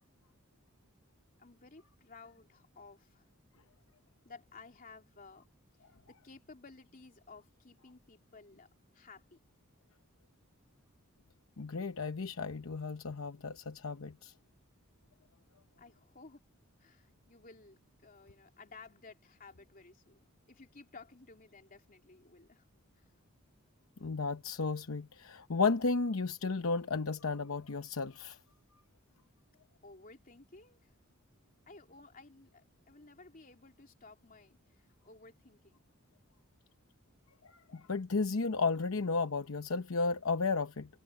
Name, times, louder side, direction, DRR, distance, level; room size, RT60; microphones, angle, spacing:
voice 1, 1.4-3.3 4.2-5.5 6.1-8.7 8.9-9.4 15.8-16.4 16.8-22.6 22.9-23.1 29.8-30.9 31.7-35.8, left 3 dB, 40° left, 3.0 m, -55 dB
voice 2, 11.6-14.3 24.0-28.4 37.4-41.0, left 4 dB, 70° left, 0.8 m, -33 dB
head